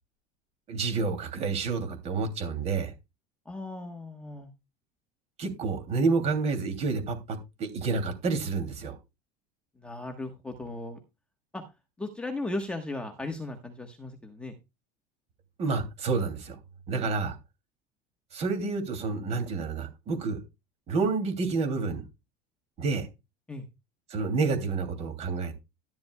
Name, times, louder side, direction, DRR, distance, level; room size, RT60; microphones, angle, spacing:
voice 1, 0.7-2.9 5.4-9.0 15.6-16.6 16.9-17.4 18.3-20.4 20.9-22.0 22.8-23.1 24.1-25.5, right 4 dB, 35° right, 7 dB, 2.9 m, -29 dB
voice 2, 3.4-4.5 9.8-11.0 11.5-11.6 12.0-14.5 23.5-23.7, left 2 dB, 5° left, 3 dB, 1.3 m, -37 dB
12.5 x 11.5 x 2.3 m, 0.24 s
cardioid pair, 165°, 19 cm